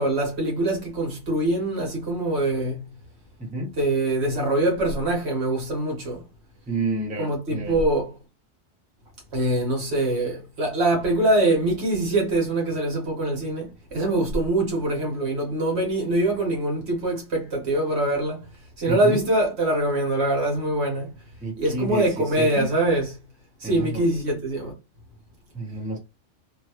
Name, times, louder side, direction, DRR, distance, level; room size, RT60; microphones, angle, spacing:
voice 1, 0.0-2.8 3.8-6.2 7.2-8.1 9.3-18.4 18.8-21.1 21.6-23.1 23.6-24.7, right 1 dB, 60° right, 1.5 m, -24 dB
voice 2, 3.4-3.7 6.7-7.8 18.9-19.2 21.4-22.7 23.6-24.2 25.5-26.0, right 2 dB, 10° right, 0.6 m, -30 dB
3.1 x 2.4 x 2.8 m
omnidirectional pair, 1.3 m